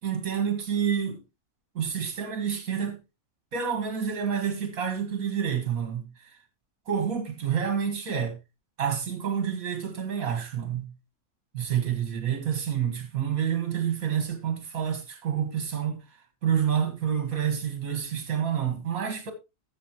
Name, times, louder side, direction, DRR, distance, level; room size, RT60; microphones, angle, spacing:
voice 1, 0.0-1.2 1.8-3.0 3.5-6.1 6.9-8.3 8.8-10.9 11.5-16.0 16.4-19.3, right 8 dB, 65° right, 2.1 m, -28 dB
13.0 x 7.2 x 3.0 m
omnidirectional pair, 1.6 m